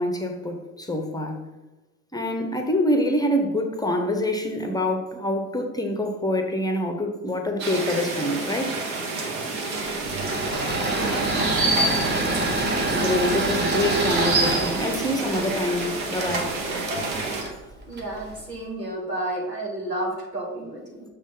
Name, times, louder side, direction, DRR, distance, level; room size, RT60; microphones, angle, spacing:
voice 1, 0.0-1.4 2.1-9.0 12.9-16.5, left 1 dB, 10° left, 4 dB, 0.9 m, -26 dB
sound 1, 7.6-17.4, right 3 dB, 60° right, 1.6 m, -28 dB
Engine / Mechanisms, 10.0-18.4, right 2 dB, 20° right, 1.4 m, -27 dB
voice 2, 10.8-11.3 17.9-21.0, right 1 dB, 85° right, -1 dB, 1.7 m, -31 dB
6.4 x 6.3 x 3.9 m, 1.1 s
figure-of-eight pair, 65°, 47 cm